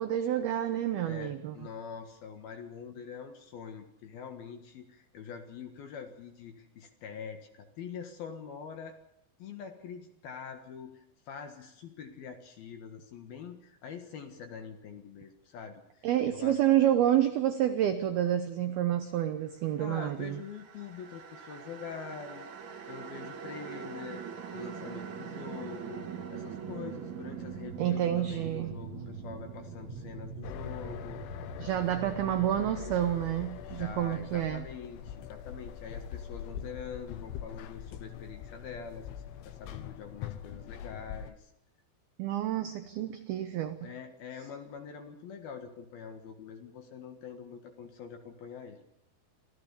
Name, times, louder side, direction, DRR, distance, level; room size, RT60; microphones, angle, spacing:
voice 1, 0.0-1.6 16.0-20.4 27.8-28.7 31.6-34.6 42.2-43.9, right 11 dB, 80° right, 8 dB, 2.2 m, -29 dB
voice 2, 1.0-9.0 9.4-16.6 19.8-22.5 22.9-24.2 24.5-31.5 33.6-41.5 43.8-48.8, left 6 dB, 60° left, 5 dB, 2.9 m, -44 dB
sound 1, 20.1-35.3, right 6 dB, 55° right, 2.1 m, -43 dB
sound 2, 30.4-41.3, left 9 dB, 75° left, 3.4 m, -43 dB
26.0 x 16.0 x 7.0 m, 0.76 s
omnidirectional pair, 5.8 m